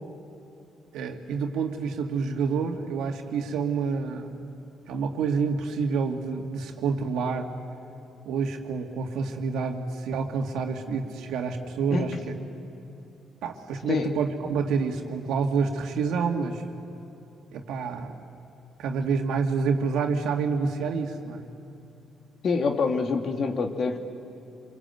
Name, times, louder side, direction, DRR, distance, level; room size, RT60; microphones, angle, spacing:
voice 1, 0.9-4.5 4.9-7.5 8.3-12.3 13.4-16.6 17.5-18.1 18.8-21.4, right 5 dB, 85° right, 3 dB, 2.3 m, -28 dB
voice 2, 11.9-12.2 13.9-14.1 22.4-24.0, left 4 dB, 60° left, 4 dB, 2.4 m, -26 dB
26.5 x 23.5 x 9.3 m, 2.8 s
cardioid pair, 90°, 0 cm